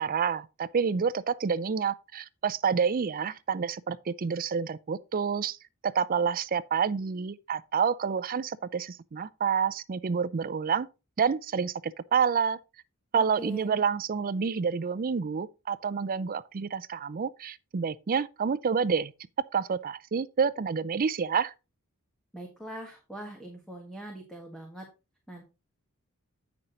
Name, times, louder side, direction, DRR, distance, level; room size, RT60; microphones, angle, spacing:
voice 1, 0.0-5.6 5.8-10.9 11.2-12.6 13.1-19.1 19.5-21.5, right 6 dB, 40° right, 0.4 m, -28 dB
voice 2, 13.1-13.8 22.3-24.9 25.3-25.4, right 1 dB, ahead, 1.5 m, -42 dB
8.8 x 6.0 x 3.9 m
head